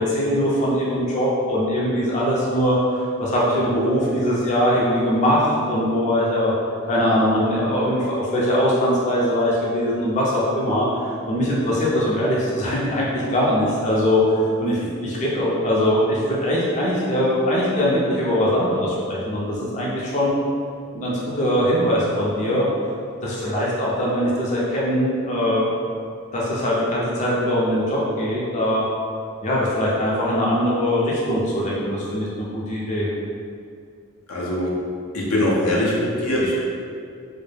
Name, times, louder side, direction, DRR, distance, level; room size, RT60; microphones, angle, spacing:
voice 1, 0.0-6.5 6.9-20.4 20.9-22.7 23.2-25.7 26.3-28.8 29.4-33.1, equal, 35° left, -6 dB, 0.4 m, -21 dB
voice 2, 34.3-34.8 35.1-36.6, left 1 dB, 85° left, -4 dB, 0.5 m, -22 dB
2.2 x 2.0 x 3.2 m, 2.3 s
head